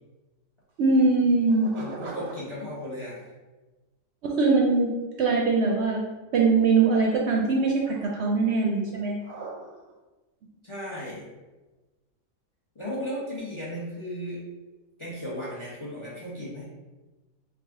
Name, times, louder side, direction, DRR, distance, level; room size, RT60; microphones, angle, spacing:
voice 1, 0.8-2.1 4.2-4.9 5.2-6.0 6.3-9.5, right 3 dB, 65° right, -1 dB, 0.7 m, -22 dB
voice 2, 1.8-3.3 10.6-11.3 12.7-14.5 15.0-16.6, equal, 30° left, -6 dB, 0.7 m, -35 dB
3.4 x 2.4 x 3.5 m, 1.2 s
omnidirectional pair, 1.4 m